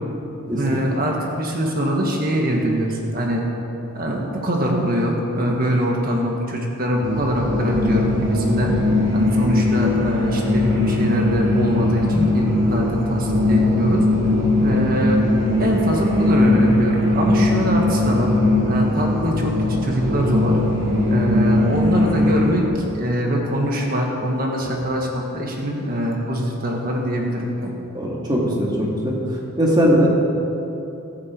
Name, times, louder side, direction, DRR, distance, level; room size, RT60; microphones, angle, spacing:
voice 1, 0.5-3.4 3.9-8.7 9.1-14.1 14.6-15.2 15.6-18.3 18.7-19.5 19.8-20.6 21.1-27.7, equal, 40° right, 0 dB, 1.7 m, -23 dB
sound 1, 7.0-22.6, left 1 dB, 55° right, 2.4 m, -19 dB
voice 2, 27.9-29.1 29.6-30.1, equal, 20° right, -3 dB, 2.3 m, -19 dB
16.5 x 13.5 x 4.6 m, 2.9 s
head